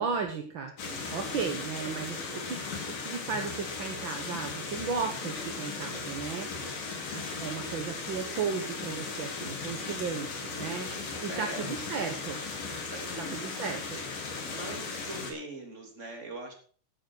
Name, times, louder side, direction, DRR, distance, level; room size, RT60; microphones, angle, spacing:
voice 1, 0.0-0.7 1.1-6.5 7.1-10.9 11.2-12.4 13.3-14.0, right 5 dB, 50° right, 4 dB, 1.5 m, -35 dB
sound 1, 0.8-15.3, left 4 dB, 90° left, 4.8 m, -37 dB
voice 2, 0.8-1.1 11.3-11.7 12.9-13.5 14.4-16.5, right 2 dB, 20° right, 2 dB, 3.3 m, -41 dB
15.5 x 7.4 x 6.3 m, 0.43 s
omnidirectional pair, 3.7 m